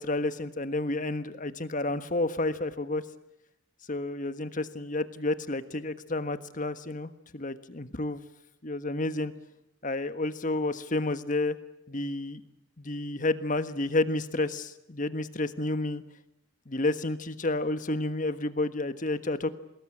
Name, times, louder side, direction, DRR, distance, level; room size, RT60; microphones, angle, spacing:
voice 1, 0.0-3.0 3.9-8.2 8.6-9.3 9.8-11.6 11.9-12.4 12.8-16.0 16.7-19.5, left 2 dB, 45° left, 11 dB, 1.4 m, -30 dB
26.5 x 20.0 x 8.8 m, 0.84 s
head